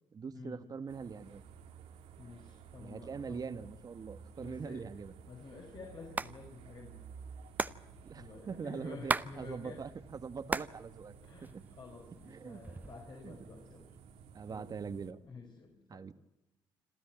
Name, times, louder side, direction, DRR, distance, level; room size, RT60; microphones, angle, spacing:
voice 1, 0.1-1.4 2.8-5.1 8.0-11.1 11.5-11.6 12.3-12.6 13.2-13.4 14.3-15.2 15.9-16.1, right 5 dB, 40° right, 11 dB, 1.5 m, -42 dB
sound 1, 0.9-15.1, right 6 dB, 85° right, 2.3 m, -54 dB
voice 2, 2.2-3.4 4.4-4.8 5.3-7.0 8.2-9.8 11.2-13.9 14.5-14.8 15.2-16.0, left 4 dB, 50° left, 0 dB, 5.2 m, -50 dB
Hands, 5.9-6.3 6.6-6.7 6.9-9.3 9.6-10.8 11.1-11.9 12.5-13.1, right 3 dB, 15° right, 0.7 m, -35 dB
27.0 x 13.5 x 9.0 m, 1.0 s
cardioid pair, 90°, 10 cm